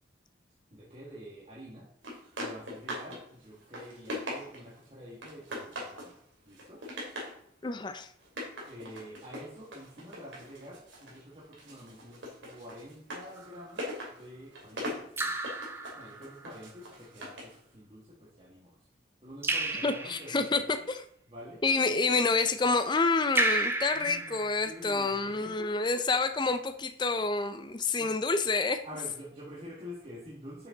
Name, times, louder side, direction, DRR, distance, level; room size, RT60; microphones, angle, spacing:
voice 1, 0.7-1.9 2.4-6.2 6.4-6.8 8.7-15.5 15.9-18.8 19.2-20.8 21.3-21.6 23.9-26.1 28.0-28.1 28.8-30.7, equal, 30° right, -6 dB, 1.9 m, -47 dB
sound 1, 2.0-3.2 3.5-4.8 5.2-6.1 6.5-7.4 8.2-11.2 11.5-17.6, equal, 80° right, 2.8 m, -41 dB
voice 2, 7.6-8.1 19.8-20.6 20.9-21.0 21.6-28.8, left 3 dB, 25° left, 9 dB, 0.5 m, -28 dB
Raindrop / Drip, 13.4-13.8 15.2-16.5 19.4-20.5 23.4-25.1, right 2 dB, 15° right, 0.7 m, -32 dB
7.9 x 6.8 x 3.9 m, 0.67 s
head